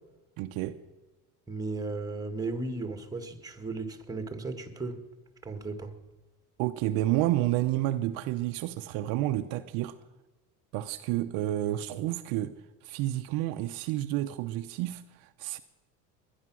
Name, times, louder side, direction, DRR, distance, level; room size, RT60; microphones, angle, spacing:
voice 1, 0.4-0.8 6.6-9.9 10.7-12.5 12.8-15.6, right 14 dB, 70° right, 0.8 m, -30 dB
voice 2, 1.5-5.0 5.4-5.9, right 3 dB, 10° right, 1.9 m, -35 dB
21.5 x 10.5 x 6.2 m
supercardioid pair, 115°, 37 cm